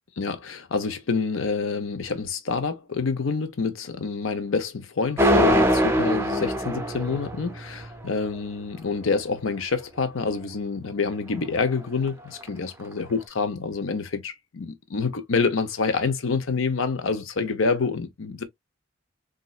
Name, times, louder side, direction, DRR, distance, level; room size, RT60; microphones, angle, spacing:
voice 1, 0.2-18.4, left 4 dB, 90° left, 0.8 m, -27 dB
sound 1, 5.2-8.1, equal, 15° right, 0.5 m, -22 dB
4.1 x 2.5 x 2.3 m
head